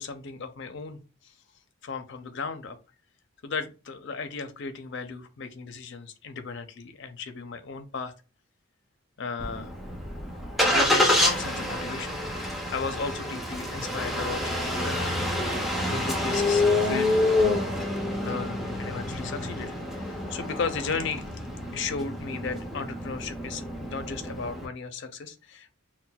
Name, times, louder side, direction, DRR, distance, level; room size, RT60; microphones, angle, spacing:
voice 1, 0.0-1.3 1.8-2.8 3.4-8.1 9.2-9.7 10.6-12.2 12.7-21.2 21.7-25.7, left 5 dB, 55° left, 8 dB, 0.5 m, -35 dB
Engine starting, 9.4-24.7, left 1 dB, ahead, 0.5 m, -28 dB
5.6 x 2.1 x 2.2 m, 0.33 s
head